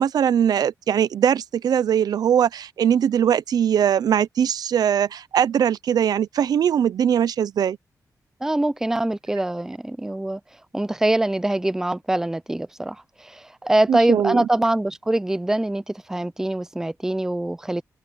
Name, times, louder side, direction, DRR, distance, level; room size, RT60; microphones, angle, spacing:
voice 1, 0.0-7.8 13.9-14.5, right 9 dB, 80° right, 0.6 m, -21 dB
voice 2, 8.4-10.4 10.7-17.8, right 1 dB, 5° right, 0.5 m, -24 dB
open air
wide cardioid pair, 140°, 7 cm